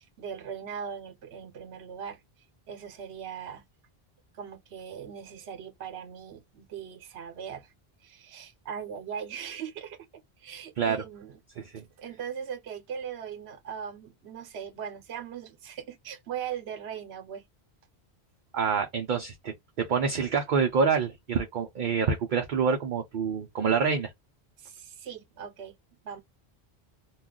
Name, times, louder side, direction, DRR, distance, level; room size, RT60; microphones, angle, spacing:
voice 1, 0.0-2.2 2.7-3.7 4.3-7.7 8.0-10.0 10.4-11.4 12.0-17.5 24.6-25.8 26.0-26.2, right 8 dB, 80° right, 0.9 m, -39 dB
voice 2, 18.5-24.1, right 6 dB, 55° right, 0.6 m, -27 dB
2.3 x 2.3 x 3.6 m
omnidirectional pair, 1.1 m